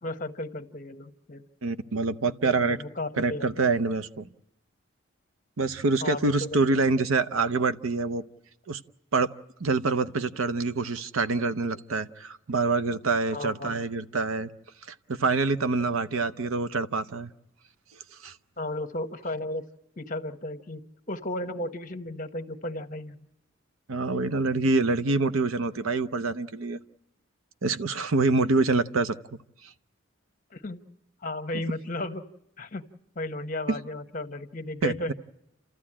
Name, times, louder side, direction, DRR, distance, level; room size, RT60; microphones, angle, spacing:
voice 1, 0.0-1.4 2.4-3.6 6.0-6.8 13.3-13.8 18.6-19.6 20.0-20.8 21.1-23.2 30.5-30.8 31.2-32.2 32.6-32.8 33.1-35.1, left 1 dB, 40° left, 8 dB, 1.0 m, -34 dB
voice 2, 1.6-2.8 3.2-4.3 5.6-8.2 8.7-8.8 9.1-9.3 9.6-14.5 15.1-17.3 18.2-18.3 23.9-26.8 27.6-29.2 33.7-33.8 34.8-35.1, right 3 dB, 80° right, 13 dB, 0.7 m, -26 dB
30.0 x 13.5 x 8.6 m, 0.86 s
head